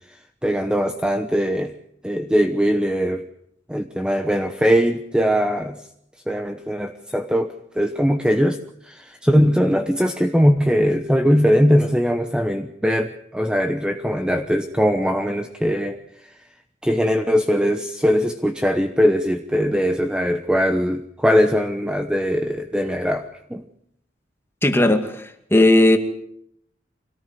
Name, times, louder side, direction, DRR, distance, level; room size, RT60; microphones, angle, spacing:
voice 1, 0.4-1.7 2.0-3.3 3.7-5.8 6.3-16.0 16.2-16.3 16.8-23.6, equal, 5° right, 7 dB, 1.0 m, -20 dB
voice 2, 24.6-25.2 25.5-26.0, left 1 dB, 15° left, 6 dB, 2.2 m, -15 dB
25.5 x 18.0 x 8.1 m, 0.73 s
head